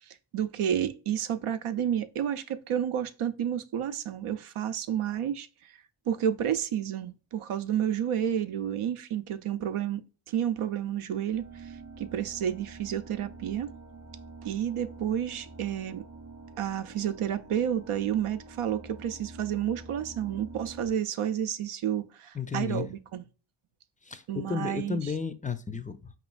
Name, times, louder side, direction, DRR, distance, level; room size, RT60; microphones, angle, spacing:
voice 1, 0.1-5.7 6.1-13.7 14.4-16.1 16.6-23.2 24.3-25.0, right 9 dB, 85° right, 0.6 m, -30 dB
sound 1, 11.3-20.9, right 3 dB, 30° right, 0.6 m, -47 dB
voice 2, 22.3-22.9 24.0-26.1, left 5 dB, 15° left, 0.4 m, -33 dB
5.0 x 3.0 x 2.3 m
wide cardioid pair, 65°, 49 cm